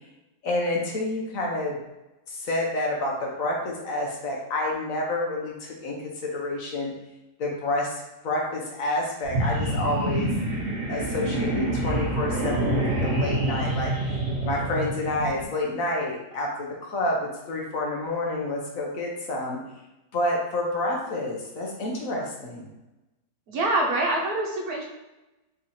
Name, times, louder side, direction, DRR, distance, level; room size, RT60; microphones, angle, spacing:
voice 1, 0.4-1.8 2.3-6.9 7.4-10.3 10.9-14.2 14.4-19.6 20.1-22.7, left 1 dB, 60° left, -2 dB, 1.1 m, -29 dB
sound 1, 9.2-15.4, right 1 dB, 50° right, 1.5 m, -27 dB
voice 2, 23.5-24.9, right 2 dB, 70° right, 1 dB, 1.2 m, -25 dB
3.7 x 3.0 x 4.1 m, 0.99 s
omnidirectional pair, 1.8 m